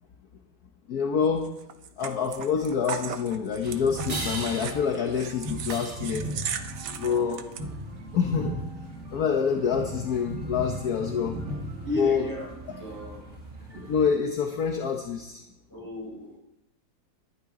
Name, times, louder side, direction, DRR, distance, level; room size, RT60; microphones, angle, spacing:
voice 1, 0.9-1.5 2.0-6.3 6.9-7.4 8.1-11.4 12.0-12.3 13.8-15.4, left 6 dB, 60° left, 3 dB, 1.5 m, -27 dB
sound 1, 1.4-7.6, right 8 dB, 70° right, 1.5 m, -37 dB
sound 2, 3.6-14.1, right 1 dB, 40° right, 2.4 m, -37 dB
voice 2, 7.0-7.3 11.8-13.3 15.7-16.4, left 1 dB, 10° left, -3 dB, 5.2 m, -35 dB
19.5 x 11.5 x 3.8 m, 0.91 s
omnidirectional pair, 2.0 m